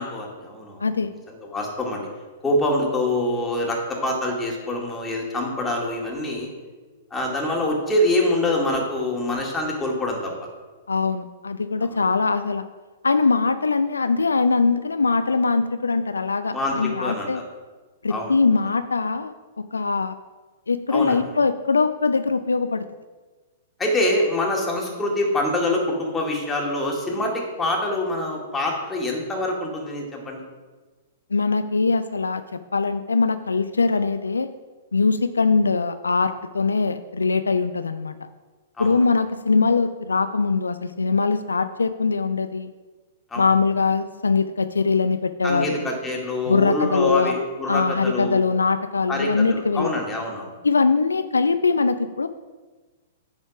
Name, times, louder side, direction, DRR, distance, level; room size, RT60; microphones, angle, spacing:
voice 1, 0.0-0.8 1.3-2.1 2.4-6.5 7.1-10.3 11.8-12.0 16.5-17.3 18.1-18.4 20.9-21.2 23.8-30.4 38.8-39.0 43.3-43.4 45.4-48.4 49.1-50.5, left 1 dB, 15° left, -1 dB, 2.1 m, -25 dB
voice 2, 10.9-12.6 13.0-17.4 18.0-20.1 20.7-22.8 31.3-32.4 32.7-34.5 34.9-38.1 38.8-42.7 43.4-45.9 46.5-47.3 47.7-49.9 50.6-52.3, left 4 dB, 80° left, 11 dB, 0.4 m, -22 dB
9.5 x 4.2 x 5.9 m, 1.3 s
figure-of-eight pair, 110°, 0 cm